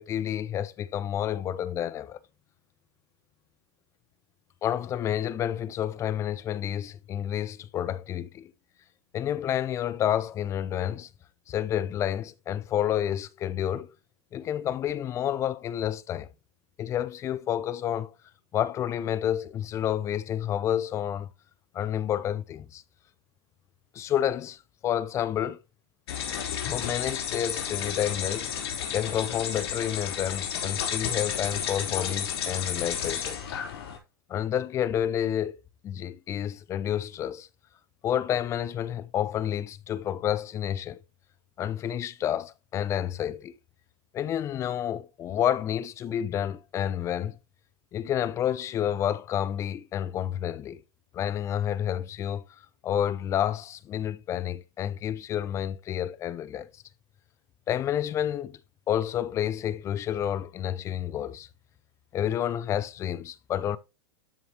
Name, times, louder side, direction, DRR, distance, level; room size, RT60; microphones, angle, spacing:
voice 1, 0.0-2.2 4.6-8.5 9.1-11.1 11.5-13.9 14.3-16.3 16.8-18.1 18.5-21.3 21.7-22.8 23.9-24.6 24.8-25.6 26.6-28.5 28.9-33.4 34.3-35.5 35.8-37.5 38.0-41.0 41.6-43.5 44.1-47.4 47.9-50.8 51.1-52.4 52.8-56.7 57.7-58.6 58.9-61.5 62.1-63.8, left 10 dB, 20° left, 0.4 m, -29 dB
sound 1, 26.1-34.0, left 8 dB, 60° left, 2.9 m, -32 dB
13.0 x 4.8 x 2.9 m
supercardioid pair, 145°, 14 cm